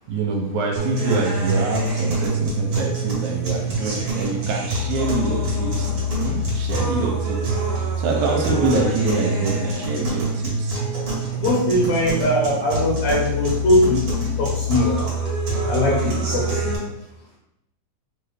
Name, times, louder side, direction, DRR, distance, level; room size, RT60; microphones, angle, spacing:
voice 1, 0.1-10.8, right 3 dB, 80° right, 1 dB, 2.0 m, -25 dB
sound 1, 0.8-16.8, right 1 dB, 50° right, 1.6 m, -25 dB
voice 2, 11.3-15.0 15.7-16.9, left 1 dB, 70° left, -4 dB, 1.9 m, -21 dB
4.9 x 2.4 x 3.2 m, 0.83 s
omnidirectional pair, 3.5 m